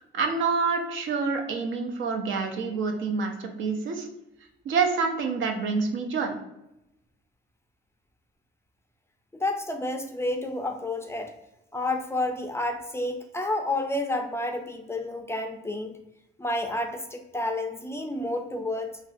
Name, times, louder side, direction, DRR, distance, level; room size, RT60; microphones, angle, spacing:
voice 1, 0.1-4.1 4.6-6.3, right 4 dB, 75° right, 4 dB, 0.6 m, -27 dB
voice 2, 9.3-11.3 11.7-16.0 16.4-19.0, left 2 dB, 15° left, 4 dB, 0.3 m, -30 dB
3.1 x 2.5 x 2.5 m, 0.85 s
cardioid pair, 90°, 20 cm